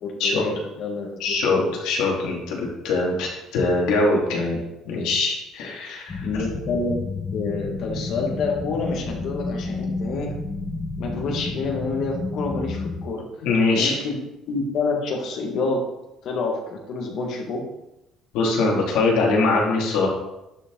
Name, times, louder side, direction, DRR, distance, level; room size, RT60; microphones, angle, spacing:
voice 1, 0.0-1.6 6.2-7.0 7.3-10.3 11.0-13.2 13.7-14.2 14.5-15.8 16.2-17.6, left 3 dB, 50° left, 1 dB, 1.8 m, -28 dB
voice 2, 1.2-4.6 4.8-6.3 13.4-13.9 18.3-20.1, left 3 dB, 80° left, -2 dB, 2.6 m, -22 dB
sound 1, 6.1-13.0, left 3 dB, 20° left, 1.2 m, -31 dB
11.5 x 5.1 x 3.9 m, 0.92 s
cardioid pair, 170°, 0 cm